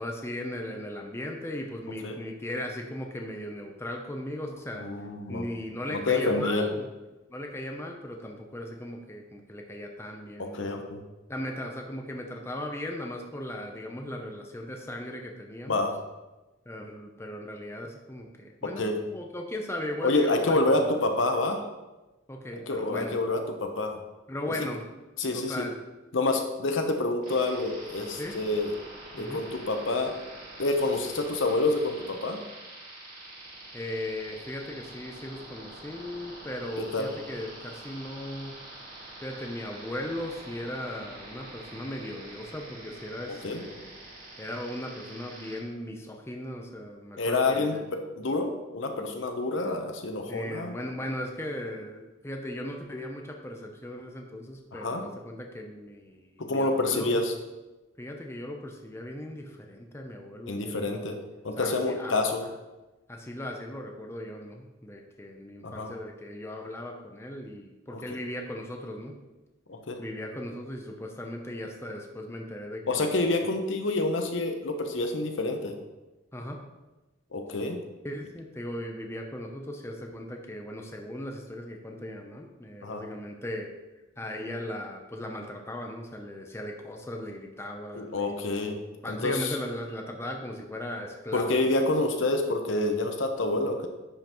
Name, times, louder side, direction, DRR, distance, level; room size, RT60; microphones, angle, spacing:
voice 1, 0.0-4.9 5.3-6.9 7.3-10.7 11.3-15.9 16.7-20.9 22.3-23.2 24.3-24.8 25.3-25.7 28.2-28.4 29.2-29.4 33.7-38.5 39.2-43.9 44.4-47.9 50.3-57.2 58.0-61.0 61.6-62.5 63.1-69.2 70.0-73.5 76.3-76.6 78.0-83.7 84.2-88.4 89.0-91.7, left 1 dB, 15° left, 2 dB, 0.6 m, -37 dB
voice 2, 4.8-5.4 5.9-6.7 10.4-11.0 15.7-16.0 18.6-19.0 20.0-21.7 22.7-24.0 25.2-25.7 26.1-28.7 29.1-30.1 30.6-32.4 36.8-37.1 43.4-43.6 47.2-47.8 48.2-50.8 54.7-55.0 56.4-57.3 60.5-61.2 61.4-62.4 65.6-65.9 67.9-68.2 69.7-70.0 72.9-75.7 77.3-77.8 82.8-83.0 87.9-88.8 89.0-89.6 91.3-93.9, left 2 dB, 75° left, 4 dB, 0.9 m, -28 dB
sound 1, 27.2-45.6, right 2 dB, 45° right, 2.5 m, -46 dB
10.0 x 5.6 x 3.0 m, 1.1 s
head